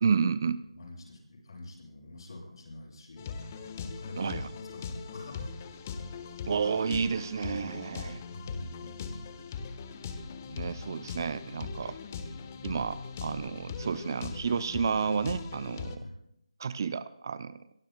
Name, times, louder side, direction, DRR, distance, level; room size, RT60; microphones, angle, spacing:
voice 1, 0.0-0.6 4.2-4.5 6.5-8.2 10.5-12.0 12.6-16.0 16.6-17.7, right 5 dB, 35° right, 15 dB, 0.5 m, -31 dB
voice 2, 0.7-5.5 5.8-5.9 8.3-9.2 16.0-16.2, left 2 dB, 45° left, -1 dB, 7.5 m, -46 dB
sound 1, 3.2-16.0, left 5 dB, 25° left, 1.2 m, -40 dB
26.5 x 22.5 x 2.2 m, 0.81 s
figure-of-eight pair, 165°, 3 cm